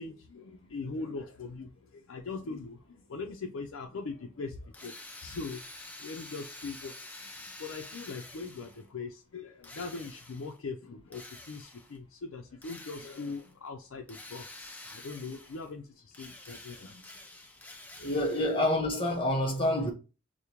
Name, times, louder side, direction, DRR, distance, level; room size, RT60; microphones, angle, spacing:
voice 1, 0.0-17.2, left 4 dB, 90° left, 0.5 m, -41 dB
Drill, 4.7-8.9 9.6-10.6 11.1-12.0 12.6-13.5 14.1-15.7 16.1-18.7, left 2 dB, 10° left, 0.4 m, -48 dB
voice 2, 18.0-19.9, left 1 dB, 25° left, 0.9 m, -27 dB
4.9 x 2.1 x 2.9 m
head